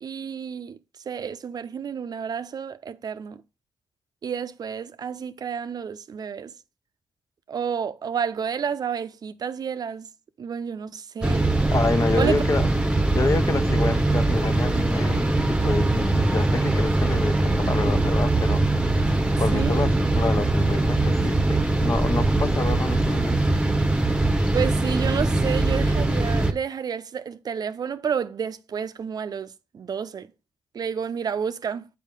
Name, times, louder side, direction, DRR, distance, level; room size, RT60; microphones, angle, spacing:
voice 1, 0.0-0.8 1.1-3.4 4.2-6.5 7.5-10.1 10.4-11.5 12.2-12.4 19.5-19.8 24.5-30.3 30.7-31.9, right 7 dB, 55° right, 0.5 m, -30 dB
sound 1, 11.2-26.5, right 2 dB, 10° right, 0.9 m, -22 dB
voice 2, 11.7-12.7 13.1-18.6 19.4-23.6, left 3 dB, 40° left, 0.6 m, -28 dB
5.5 x 4.5 x 5.1 m
supercardioid pair, 45°, 8 cm